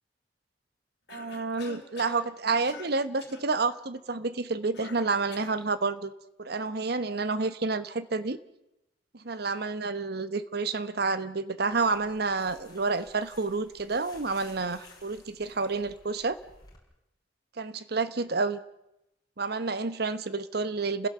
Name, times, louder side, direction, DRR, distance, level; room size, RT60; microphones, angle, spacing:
Cough, 1.1-2.2 2.6-2.9 3.2-3.5 4.7-5.6, left 4 dB, 65° left, 3.2 m, -46 dB
voice 1, 1.1-6.1 6.4-8.4 9.1-16.4 17.6-18.6 19.4-21.1, right 4 dB, 60° right, 13 dB, 1.0 m, -29 dB
sound 1, 11.7-16.8, left 3 dB, 20° left, 4.9 m, -55 dB
29.0 x 16.0 x 6.7 m, 0.90 s
head